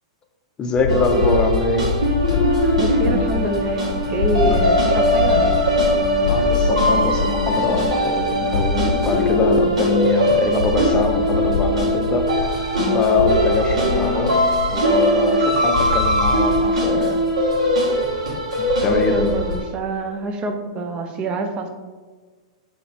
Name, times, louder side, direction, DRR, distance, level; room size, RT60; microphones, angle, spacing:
voice 1, 0.6-1.9 4.4-4.6 6.3-12.3 12.9-14.4 14.7-17.2 18.8-19.3, left 3 dB, 25° left, 4 dB, 0.6 m, -23 dB
sound 1, 0.8-19.6, left 4 dB, 70° left, 0.4 m, -26 dB
sound 2, 0.9-19.6, equal, 85° right, 1.3 m, -20 dB
voice 2, 2.7-5.6 18.9-21.7, right 2 dB, 30° right, 5 dB, 0.6 m, -26 dB
3.9 x 2.8 x 4.2 m, 1.4 s
hypercardioid pair, 120°, 3 cm